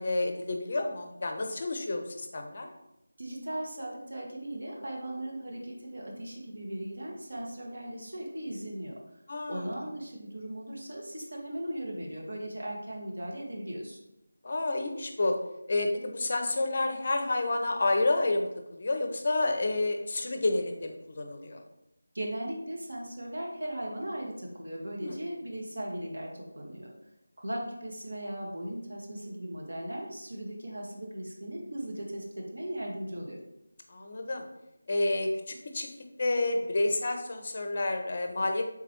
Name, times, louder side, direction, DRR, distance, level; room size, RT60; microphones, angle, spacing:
voice 1, 0.0-2.7 9.3-9.6 14.4-15.4 15.7-21.6 25.0-25.2 33.9-34.4 34.9-35.9 36.2-38.6, left 2 dB, 40° left, 4 dB, 0.5 m, -29 dB
voice 2, 3.2-9.0 9.5-14.0 22.1-26.3 26.6-26.9 27.4-33.4, right 1 dB, 65° right, -1 dB, 0.8 m, -38 dB
3.6 x 3.0 x 2.9 m, 0.88 s
figure-of-eight pair, 165°, 0 cm